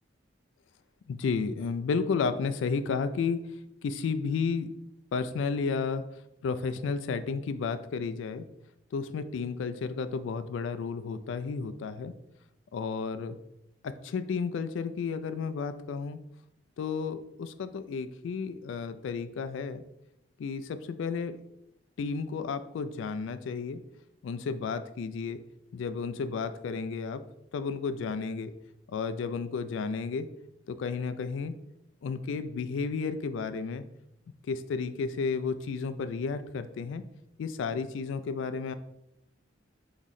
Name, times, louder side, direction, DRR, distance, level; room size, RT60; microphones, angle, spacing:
voice 1, 1.1-3.4 3.8-4.7 5.1-6.0 6.4-8.4 8.9-12.1 12.7-13.4 13.8-16.2 16.8-19.8 20.4-21.4 22.0-23.8 24.2-25.4 25.7-27.2 27.5-28.5 28.9-30.3 30.7-31.5 32.0-33.8 34.5-37.0 37.4-38.7, left 5 dB, 75° left, 11 dB, 0.3 m, -32 dB
3.6 x 3.0 x 4.0 m, 0.82 s
head